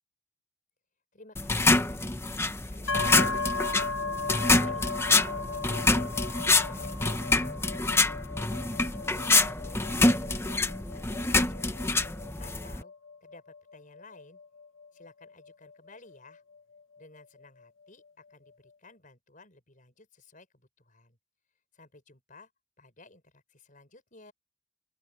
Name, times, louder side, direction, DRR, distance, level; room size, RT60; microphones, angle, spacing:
voice 1, 1.1-3.8 4.2-8.5 9.1-11.7 12.4-12.9 13.2-14.4 14.9-16.4 17.0-21.2 21.7-22.5 22.8-24.3, left 2 dB, 40° left, 6.7 m, -55 dB
sound 1, 1.4-12.8, left 3 dB, 10° left, 0.8 m, -26 dB
sound 2, 2.9-16.6, left 3 dB, 70° left, 1.0 m, -37 dB
open air
head